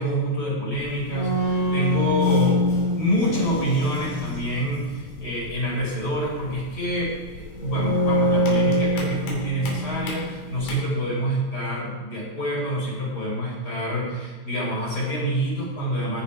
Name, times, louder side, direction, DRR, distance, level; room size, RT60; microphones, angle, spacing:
voice 1, 0.0-16.2, right 1 dB, 20° left, -4 dB, 4.1 m, -27 dB
sound 1, 0.7-10.7, left 1 dB, 65° left, 4.7 m, -25 dB
18.5 x 7.0 x 5.0 m, 1.5 s
omnidirectional pair, 5.7 m